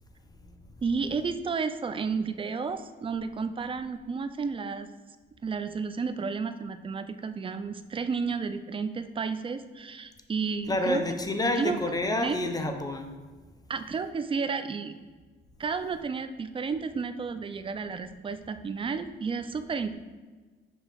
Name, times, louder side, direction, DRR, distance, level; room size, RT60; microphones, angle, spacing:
voice 1, 0.8-4.9 5.4-11.0 11.6-11.8 12.2-12.4 13.7-15.0 15.6-19.9, right 5 dB, 25° right, 10 dB, 0.4 m, -32 dB
voice 2, 10.7-13.1, left 1 dB, 20° left, 5 dB, 0.8 m, -29 dB
6.3 x 2.9 x 5.1 m, 1.4 s
cardioid pair, 90°, 20 cm